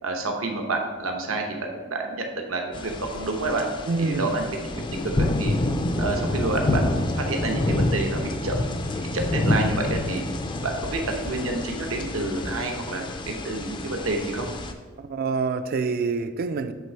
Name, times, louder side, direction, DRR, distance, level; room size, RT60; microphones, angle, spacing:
voice 1, 0.0-3.6 4.0-4.5 4.7-4.8 5.1-5.5 6.0-8.6 8.9-10.2 10.6-14.5, right 2 dB, 80° right, 3 dB, 0.9 m, -29 dB
sound 1, 2.7-14.7, left 1 dB, 25° left, 0.4 m, -28 dB
voice 2, 3.9-4.3 15.0-16.7, right 4 dB, 50° right, 11 dB, 0.3 m, -26 dB
8.3 x 3.4 x 4.5 m, 1.4 s
head